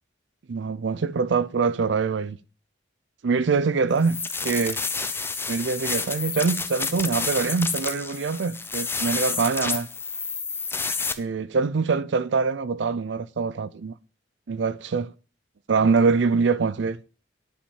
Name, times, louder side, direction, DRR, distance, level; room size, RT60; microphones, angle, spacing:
voice 1, 0.5-2.4 3.2-4.8 5.5-9.9 11.2-13.9 14.5-15.1 15.7-17.0, right 4 dB, 65° right, 0.5 m, -24 dB
sound 1, 4.0-11.1, left 4 dB, 10° left, 0.6 m, -29 dB
10.0 x 5.3 x 7.2 m
head